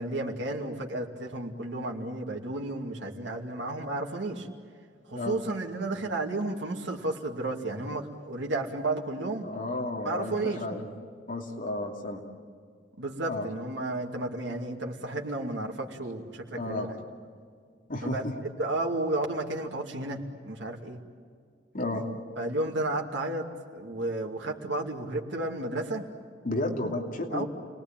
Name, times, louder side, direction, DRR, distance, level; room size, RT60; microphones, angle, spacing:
voice 1, 0.0-4.5 5.1-9.5 10.0-10.6 13.0-17.0 18.0-18.2 18.6-21.0 22.4-23.5 23.7-26.1 27.3-27.4, right 2 dB, 70° right, 0 dB, 2.7 m, -32 dB
voice 2, 9.4-10.8 11.3-12.2 13.2-13.5 16.5-16.9 17.9-18.3 21.7-22.0 26.4-27.4, left 2 dB, 50° left, 2 dB, 2.9 m, -32 dB
29.5 x 20.5 x 9.0 m, 2.2 s
head